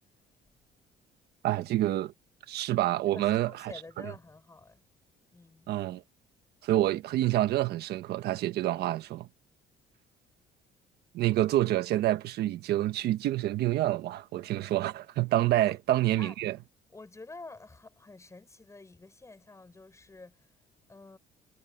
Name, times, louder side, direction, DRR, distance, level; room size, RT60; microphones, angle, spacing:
voice 1, 1.4-2.1 2.5-3.7 5.7-6.0 6.6-9.3 11.1-16.6, right 14 dB, 75° right, 1.3 m, -27 dB
voice 2, 3.0-4.8 5.3-5.8 15.6-15.8 16.2-16.3 16.9-20.5 20.9-21.2, left 3 dB, 15° left, 6.5 m, -49 dB
cardioid pair, 110°, 17 cm